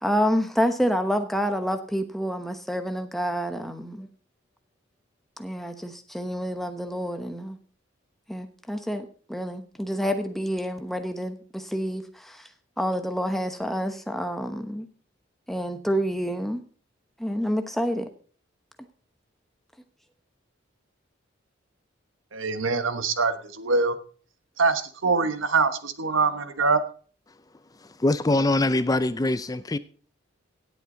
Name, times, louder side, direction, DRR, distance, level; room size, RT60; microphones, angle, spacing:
voice 1, 0.0-4.1 5.4-7.6 8.3-12.5 12.8-14.9 15.5-16.6 17.2-18.1, equal, ahead, 1.0 m, -28 dB
voice 2, 22.3-24.0 24.6-26.8, right 4 dB, 75° right, 1.2 m, -24 dB
voice 3, 27.8-29.8, left 2 dB, 20° left, 0.4 m, -23 dB
17.0 x 8.3 x 3.9 m
head